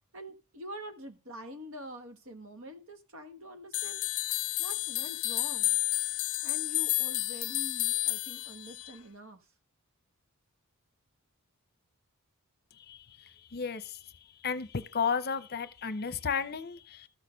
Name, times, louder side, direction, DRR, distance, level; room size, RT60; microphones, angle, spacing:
voice 1, 0.1-4.0 4.6-5.8 6.4-9.4, equal, 65° right, 1.5 m, -45 dB
sound 1, 3.7-9.0, left 20 dB, 75° left, 0.4 m, -31 dB
voice 2, 12.7-17.1, left 6 dB, 45° left, 0.8 m, -34 dB
13.5 x 6.5 x 5.1 m
head